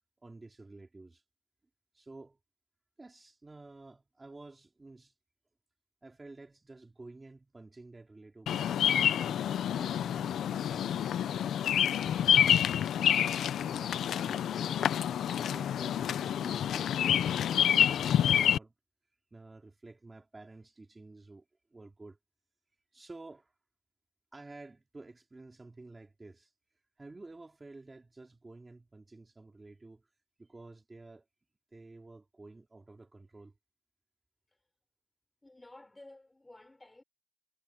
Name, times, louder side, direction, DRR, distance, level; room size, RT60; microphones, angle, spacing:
voice 1, 0.2-1.2 1.9-2.4 3.0-5.1 6.0-8.7 9.3-12.2 12.9-18.7 19.3-21.4 21.7-22.2 22.9-23.5 24.3-26.5 27.0-30.1 30.4-31.3 31.7-33.5, right 2 dB, 15° right, 3.7 m, -51 dB
Bird vocalization bird call bird song, 8.5-18.6, left 9 dB, 70° left, 0.5 m, -28 dB
voice 2, 35.4-37.0, left 2 dB, 10° left, 5.6 m, -53 dB
wide cardioid pair, 160°, 0 cm